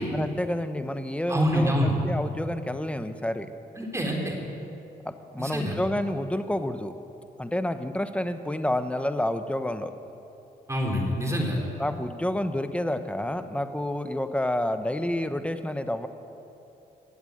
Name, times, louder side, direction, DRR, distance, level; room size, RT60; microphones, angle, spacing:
voice 1, 0.1-3.5 5.0-6.9 7.4-9.9 11.8-16.1, left 1 dB, 5° left, 9 dB, 1.0 m, -29 dB
voice 2, 1.3-1.9 3.8-4.4 5.4-5.8 10.7-11.6, equal, 15° right, -1 dB, 3.9 m, -26 dB
18.0 x 8.0 x 8.9 m, 2.8 s
cardioid pair, 70°, 17 cm